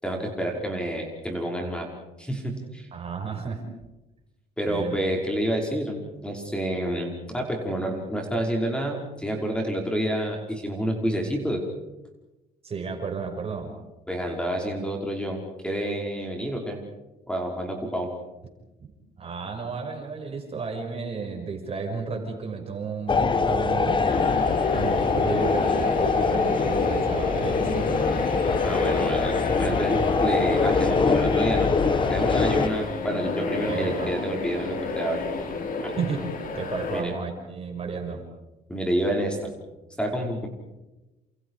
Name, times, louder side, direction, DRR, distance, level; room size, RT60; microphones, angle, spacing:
voice 1, 0.0-1.9 2.2-2.9 4.6-6.0 6.2-11.6 14.1-16.8 17.3-18.1 24.3-24.4 28.6-31.8 32.1-35.2 35.8-35.9 36.9-37.1 38.7-39.5 40.0-40.5, right 1 dB, 5° left, 1 dB, 5.2 m, -28 dB
voice 2, 2.9-3.6 4.6-5.0 12.6-13.7 19.2-24.4 24.7-27.9 33.7-34.1 36.0-36.2 36.5-38.2, right 5 dB, 35° right, 3 dB, 6.2 m, -32 dB
sound 1, 23.1-32.7, left 4 dB, 30° left, 1.7 m, -24 dB
sound 2, 24.0-37.0, left 3 dB, 55° left, 4.7 m, -30 dB
29.0 x 28.5 x 4.9 m, 1.0 s
cardioid pair, 110°, 17 cm